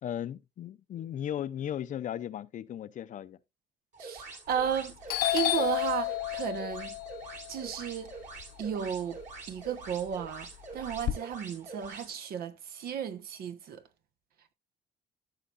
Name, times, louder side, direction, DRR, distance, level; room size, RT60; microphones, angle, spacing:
voice 1, 0.0-3.4, left 10 dB, 55° left, 0.6 m, -36 dB
sound 1, 3.9-12.1, right 4 dB, 55° right, 3.4 m, -45 dB
voice 2, 4.0-6.9 7.5-8.1 8.6-9.2 9.5-13.8, right 8 dB, 75° right, 1.2 m, -34 dB
Doorbell, 4.5-4.8 5.1-9.2 9.6-11.1, left 15 dB, 90° left, 1.0 m, -32 dB
14.0 x 5.7 x 2.5 m
cardioid pair, 110°, 16 cm